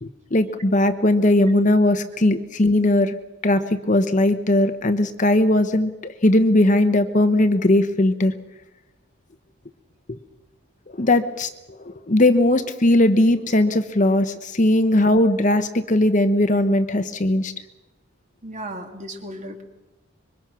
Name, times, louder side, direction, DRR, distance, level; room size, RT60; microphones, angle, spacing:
voice 1, 0.0-3.1 3.4-8.3 11.0-11.5 11.8-17.5, left 1 dB, 35° left, 9 dB, 0.9 m, -19 dB
voice 2, 18.4-19.6, right 1 dB, 35° right, 4 dB, 2.5 m, -35 dB
25.5 x 23.0 x 6.2 m, 1.0 s
head